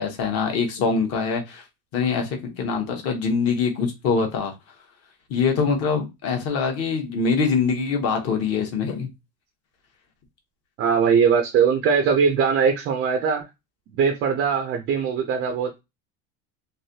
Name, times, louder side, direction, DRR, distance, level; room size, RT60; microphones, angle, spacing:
voice 1, 0.0-1.6 1.9-4.5 5.3-9.1, left 5 dB, 40° left, 0.9 m, -24 dB
voice 2, 10.8-13.4 13.9-15.8, right 6 dB, 30° right, 0.4 m, -21 dB
3.2 x 2.6 x 2.7 m
cardioid pair, 170°, 39 cm